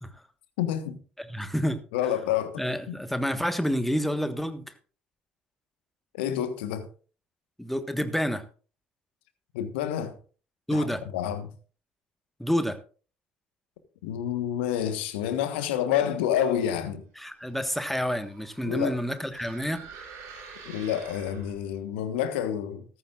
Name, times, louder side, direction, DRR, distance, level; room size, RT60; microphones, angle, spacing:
voice 1, 0.6-1.0 1.9-3.0 6.1-6.9 9.5-10.1 10.7-10.9 11.1-11.5 14.0-17.0 18.6-18.9 20.6-22.8, left 10 dB, 70° left, 1.3 m, -28 dB
voice 2, 1.2-1.8 2.6-4.6 7.6-8.4 10.7-11.0 12.4-12.8 17.2-19.8, equal, 5° left, 1.5 m, -28 dB
sound 1, 17.3-21.8, right 5 dB, 60° right, 3.6 m, -48 dB
14.5 x 14.0 x 2.5 m
figure-of-eight pair, 55°, 6 cm